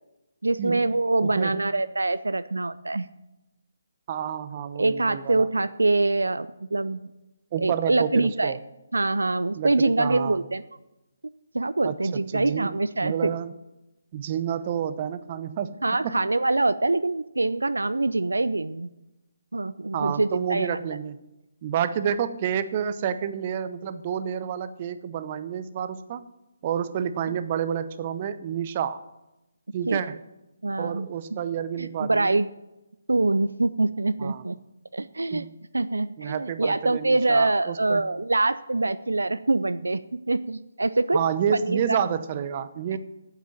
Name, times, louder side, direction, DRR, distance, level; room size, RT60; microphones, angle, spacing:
voice 1, 0.4-3.1 4.8-7.1 7.6-8.5 8.9-10.6 11.5-13.3 15.8-18.9 19.5-20.8 29.9-30.0 30.6-31.1 31.8-32.5 33.1-34.6 34.9-35.5 35.7-41.2 41.5-42.0 42.9-43.0, right 2 dB, 80° right, 14 dB, 0.4 m, -24 dB
voice 2, 1.2-1.6 4.1-5.5 7.5-8.6 9.5-10.4 11.8-12.0 12.3-12.7 13.0-13.5 14.1-15.7 16.0-16.2 19.9-21.2 21.6-26.2 26.6-29.0 29.7-30.2 30.8-32.4 34.2-34.4 35.3-35.4 36.2-38.0 41.1-43.0, right 8 dB, 35° right, 12 dB, 0.7 m, -29 dB
9.0 x 8.1 x 8.6 m, 0.97 s
figure-of-eight pair, 145°, 0 cm